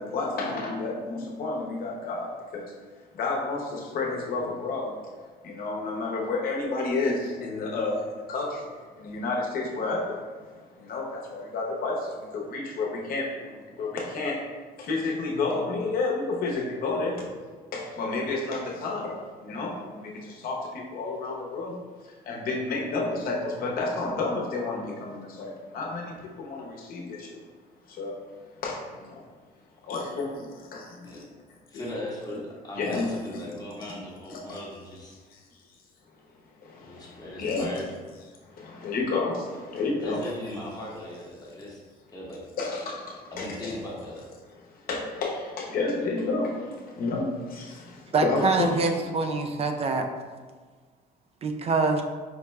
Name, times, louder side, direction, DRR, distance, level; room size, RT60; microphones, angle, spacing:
voice 1, 0.0-2.7 3.1-4.9 5.4-14.4 14.8-17.3 17.7-21.8 22.0-27.4 27.9-28.2 28.6-29.2 29.8-31.2 31.7-31.8 32.8-33.5 34.3-34.6 35.3-35.4 36.6-37.8 38.4-40.3 42.6-43.7 44.5-49.1, left 3 dB, 60° left, -1 dB, 0.9 m, -31 dB
voice 2, 31.7-32.4 32.6-35.1 36.8-37.8 40.0-41.8 42.1-42.4 43.3-44.2, left 1 dB, 20° left, -4 dB, 0.9 m, -38 dB
voice 3, 48.1-50.1 51.4-52.0, right 4 dB, 35° right, 5 dB, 0.4 m, -25 dB
4.7 x 2.2 x 3.1 m, 1.4 s
cardioid pair, 110°, 17 cm